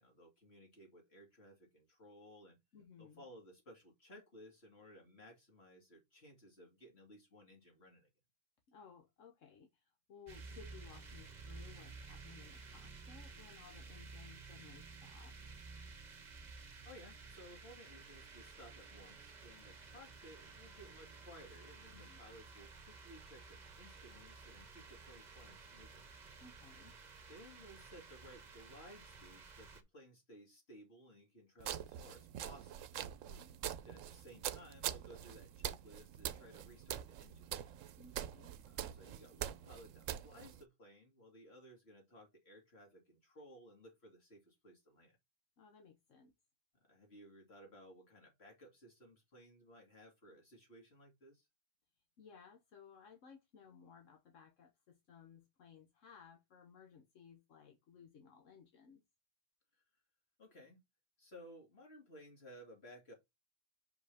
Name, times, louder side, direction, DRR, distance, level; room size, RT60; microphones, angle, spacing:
voice 1, 0.0-2.6 3.0-8.1 16.8-26.1 27.3-32.9 33.8-37.7 38.7-45.2 46.7-51.5 59.7-59.8 60.4-60.8 61.2-63.1, equal, 55° left, 2.8 m, -58 dB
voice 2, 2.7-3.2 8.7-15.3 21.9-22.2 26.4-27.0 33.2-33.6 38.0-38.5 45.6-46.3 52.2-59.0, left 6 dB, 80° left, 1.3 m, -59 dB
sound 1, 10.3-29.8, right 4 dB, 40° right, 1.0 m, -54 dB
sound 2, 31.6-40.6, right 11 dB, 85° right, 1.0 m, -44 dB
6.2 x 5.1 x 3.4 m
omnidirectional pair, 1.3 m